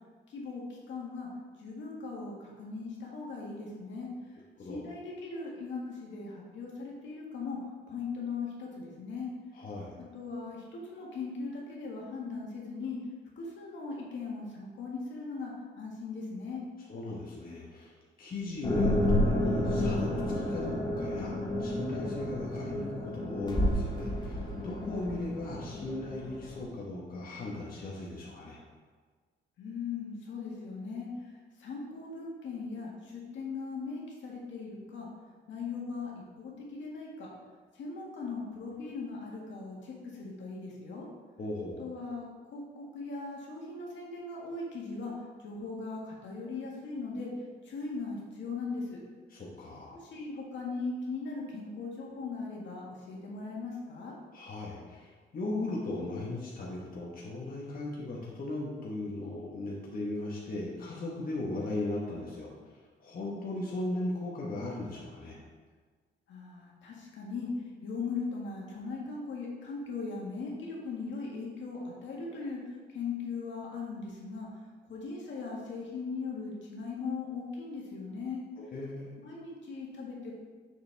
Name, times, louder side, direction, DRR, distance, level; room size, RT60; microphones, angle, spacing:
voice 1, 0.3-1.3 1.6-4.1 4.6-7.6 7.9-9.3 10.1-13.0 13.4-16.6 29.6-31.3 31.6-35.1 35.5-36.1 36.4-37.3 37.7-41.1 41.8-47.3 47.6-49.0 49.9-54.1 66.3-74.5 74.9-78.4 79.2-80.3, left 4 dB, 70° left, -3 dB, 1.8 m, -39 dB
voice 2, 9.5-9.9 16.9-21.3 21.6-28.6 41.4-41.8 49.3-50.0 54.3-62.5 63.0-65.4 78.6-79.1, left 2 dB, 45° left, -4 dB, 1.4 m, -37 dB
sound 1, 18.6-26.6, left 1 dB, 20° left, 1.7 m, -30 dB
6.7 x 6.5 x 3.5 m, 1.5 s
cardioid pair, 90°, 20 cm